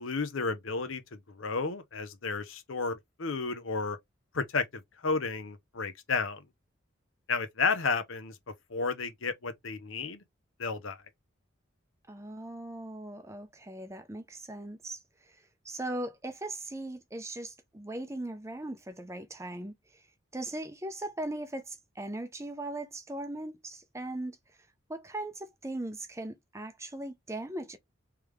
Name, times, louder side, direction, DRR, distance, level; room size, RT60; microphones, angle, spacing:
voice 1, 0.0-4.0 4.3-6.4 7.3-8.4 8.7-10.2 10.6-11.0, left 4 dB, 80° left, 0.8 m, -32 dB
voice 2, 12.1-20.0 20.3-27.8, right 1 dB, 15° right, 0.5 m, -39 dB
3.4 x 3.3 x 3.2 m
head